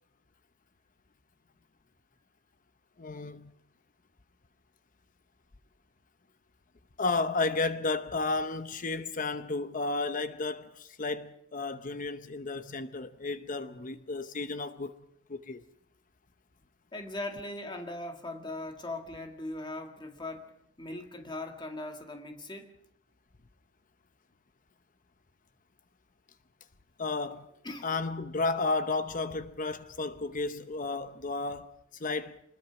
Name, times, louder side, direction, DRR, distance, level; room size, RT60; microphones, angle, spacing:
voice 1, 3.0-3.5 7.0-14.9 15.3-15.6 27.0-27.5 27.8-32.4, left 3 dB, 45° left, 0.9 m, -33 dB
voice 2, 16.9-22.8 27.6-27.9, left 2 dB, 25° left, 2.0 m, -40 dB
25.5 x 20.5 x 6.0 m
head